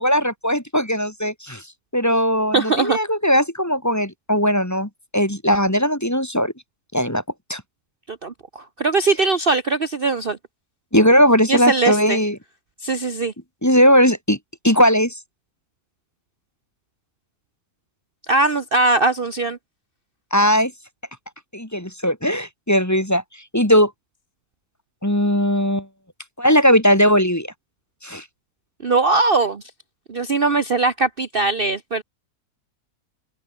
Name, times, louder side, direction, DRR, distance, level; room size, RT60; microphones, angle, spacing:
voice 1, 0.0-1.6 1.9-6.5 6.9-7.2 7.5-7.6 10.9-12.4 13.6-14.4 14.6-15.2 20.3-20.7 21.5-23.2 23.5-23.9 25.0-25.9 26.4-27.5 28.0-28.2, equal, 10° left, 2.6 m, -18 dB
voice 2, 2.5-3.0 8.1-10.4 11.5-12.2 12.8-13.3 18.3-19.6 28.8-29.6 30.1-32.0, right 3 dB, 40° right, 1.3 m, -20 dB
omnidirectional pair, 1.6 m